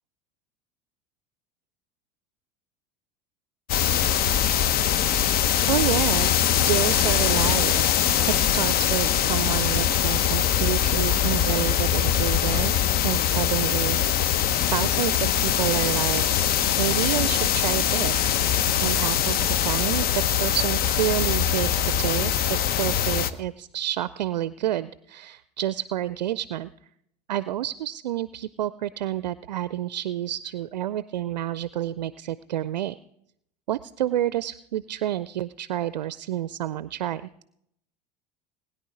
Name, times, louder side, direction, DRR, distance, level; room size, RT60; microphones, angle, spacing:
sound 1, 3.7-23.3, left 9 dB, 45° left, 0.9 m, -22 dB
voice 1, 5.7-7.9 8.3-16.2 16.8-18.3 18.8-26.7 27.3-33.0 33.7-37.3, right 12 dB, 85° right, 17 dB, 0.4 m, -29 dB
20.5 x 10.0 x 4.9 m, 0.76 s
hypercardioid pair, 80°, 21 cm